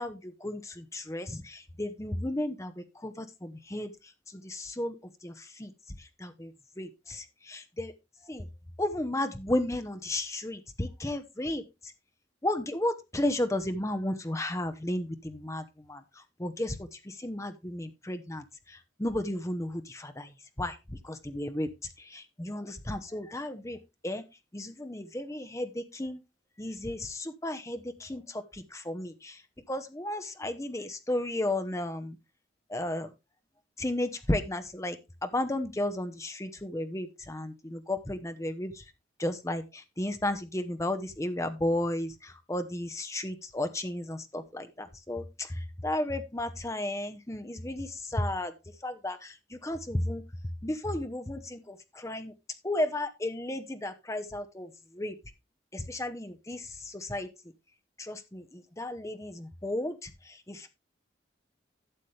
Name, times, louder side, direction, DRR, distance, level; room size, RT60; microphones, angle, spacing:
voice 1, 0.0-3.9 4.4-4.9 5.2-5.7 6.2-6.5 6.8-7.9 8.3-8.5 8.8-11.6 12.4-15.6 15.9-16.0 16.4-16.8 17.1-18.4 19.0-20.3 20.6-20.8 21.0-21.7 22.1-23.8 24.0-24.2 24.5-26.2 26.6-29.4 29.7-32.2 32.7-33.1 33.8-35.0 35.2-38.8 39.2-48.5 48.8-50.2 50.6-52.3 52.6-54.7 54.9-55.1 55.7-57.3 58.0-60.1 60.5-60.7, left 1 dB, 15° left, 9 dB, 0.9 m, -33 dB
12.0 x 7.3 x 3.3 m, 0.25 s
head